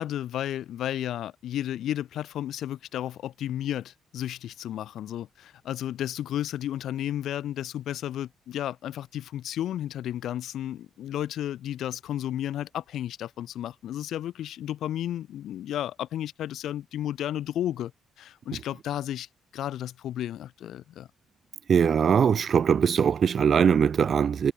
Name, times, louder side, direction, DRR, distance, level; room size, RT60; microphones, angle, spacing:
voice 1, 0.0-17.9 18.2-19.3 19.5-21.1, left 11 dB, 75° left, 6.9 m, -33 dB
voice 2, 21.7-24.5, right 7 dB, 50° right, 0.7 m, -21 dB
cardioid pair, 90°, 0 cm